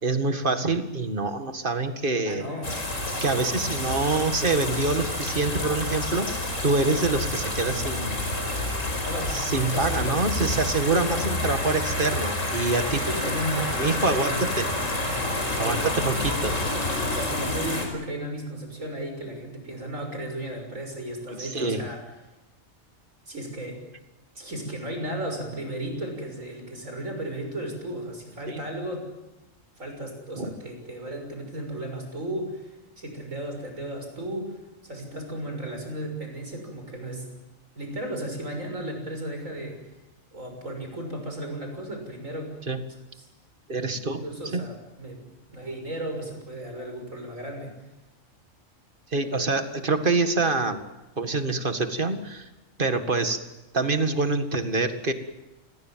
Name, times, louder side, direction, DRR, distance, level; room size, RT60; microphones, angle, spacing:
voice 1, 0.0-2.5 3.2-6.3 6.6-8.2 9.3-13.1 13.8-14.7 15.6-16.6 21.3-21.8 28.5-28.6 30.4-30.5 42.7-42.8 43.7-44.2 44.5-44.6 49.1-50.8 51.2-52.5 52.8-53.4 53.7-55.1, right 3 dB, 40° right, 8 dB, 2.1 m, -26 dB
voice 2, 2.3-2.7 9.0-9.4 9.7-10.0 10.9-11.3 12.9-13.8 14.1-14.4 15.5-15.8 17.1-22.0 23.3-23.8 24.3-29.1 29.8-34.6 34.8-37.3 37.7-39.8 40.3-42.5 43.1-43.3 43.9-45.2 45.5-47.7, right 1 dB, 85° right, 4 dB, 6.8 m, -34 dB
sound 1, 2.6-17.9, left 1 dB, 75° left, 5.4 m, -29 dB
28.0 x 21.5 x 7.5 m, 1.0 s
omnidirectional pair, 1.3 m